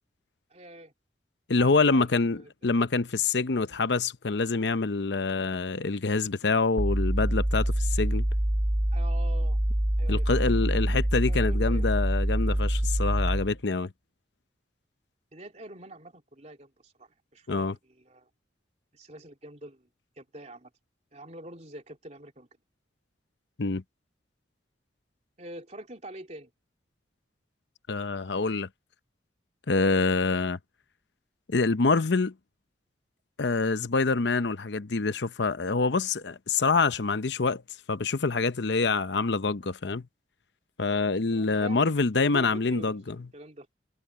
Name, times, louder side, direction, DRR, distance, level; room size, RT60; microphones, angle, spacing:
voice 1, 0.5-0.9 1.6-2.5 8.9-9.6 10.0-11.0 11.3-11.9 15.3-18.3 18.9-19.9 20.2-20.7 21.1-22.5 25.4-26.5 41.3-43.7, right 1 dB, 40° right, 3.5 m, -45 dB
voice 2, 1.5-8.2 10.1-13.9 17.5-17.7 23.6-23.8 27.9-28.7 29.7-30.6 31.5-32.3 33.4-37.6 37.9-40.0 40.8-43.2, left 4 dB, 70° left, 0.8 m, -26 dB
sound 1, 6.8-13.6, right 1 dB, 15° right, 0.6 m, -26 dB
head